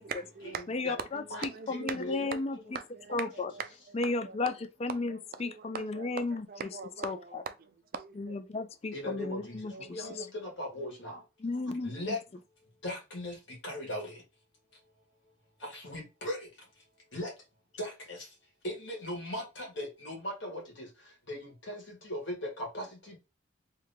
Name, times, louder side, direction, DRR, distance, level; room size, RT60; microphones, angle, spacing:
voice 1, 0.0-0.6 1.0-2.4 2.7-4.4 5.1-8.4 9.7-10.3, right 5 dB, 45° right, 0.4 m, -42 dB
voice 2, 0.7-1.2 1.7-2.6 3.1-3.5 3.9-4.5 4.8-6.5 7.0-7.4 8.2-10.3 11.4-12.2, left 3 dB, 30° left, 0.4 m, -34 dB
voice 3, 8.9-9.4 9.9-10.2 10.6-11.1 11.9-12.2 12.8-13.3 13.6-14.1 15.8-16.4 17.1-17.3 17.8-17.9 18.6-20.6 21.3-21.4 21.7-21.8 22.1-22.3 22.7-22.8, left 1 dB, 70° left, 1.8 m, -37 dB
3.3 x 2.8 x 3.5 m
head